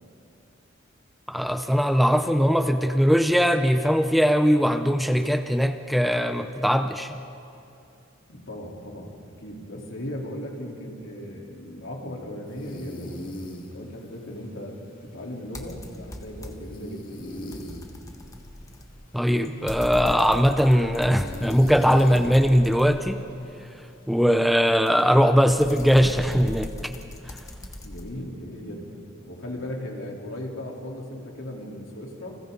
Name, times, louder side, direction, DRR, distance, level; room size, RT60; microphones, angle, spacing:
voice 1, 1.3-7.2 19.1-23.2 24.1-26.7, equal, ahead, 7 dB, 0.6 m, -20 dB
voice 2, 8.3-13.2 13.7-17.2 27.8-32.3, left 1 dB, 75° left, -1 dB, 3.7 m, -37 dB
sound 1, 12.5-26.1, left 1 dB, 45° left, 2.3 m, -42 dB
sound 2, 15.5-16.8 17.2-23.4 24.9-28.1, left 1 dB, 15° left, 1.5 m, -39 dB
30.0 x 26.5 x 4.0 m, 2.7 s
head